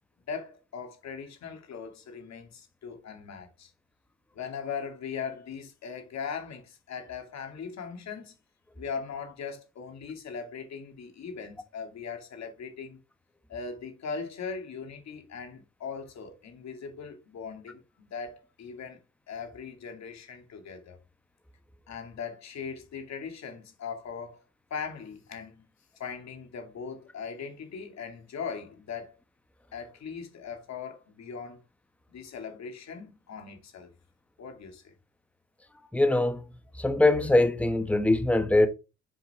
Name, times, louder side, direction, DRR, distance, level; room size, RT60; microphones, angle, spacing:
voice 1, 0.3-3.7 4.3-8.4 8.8-13.0 13.5-19.0 19.3-21.0 21.9-24.4 24.7-25.7 26.0-29.2 29.7-31.6 32.1-33.9 34.4-34.9, left 6 dB, 60° left, 2.5 m, -39 dB
voice 2, 35.9-36.4 36.8-38.7, left 2 dB, 5° left, 1.1 m, -22 dB
7.6 x 5.1 x 3.6 m
cardioid pair, 90°, 30 cm